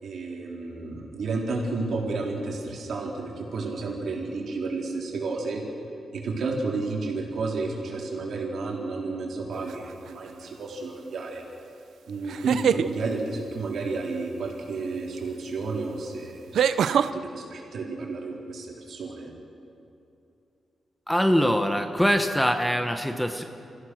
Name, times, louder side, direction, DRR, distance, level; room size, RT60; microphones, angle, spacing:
voice 1, 0.0-5.6 6.1-11.4 12.1-19.3, right 3 dB, 65° right, -1 dB, 4.1 m, -31 dB
sound 1, 9.7-10.1 12.2-12.9 15.2-15.3 16.5-17.1, right 8 dB, 85° right, 0.6 m, -23 dB
voice 2, 21.1-23.4, equal, 5° left, 6 dB, 1.0 m, -23 dB
29.5 x 16.0 x 6.5 m, 2.7 s
wide cardioid pair, 155°, 0 cm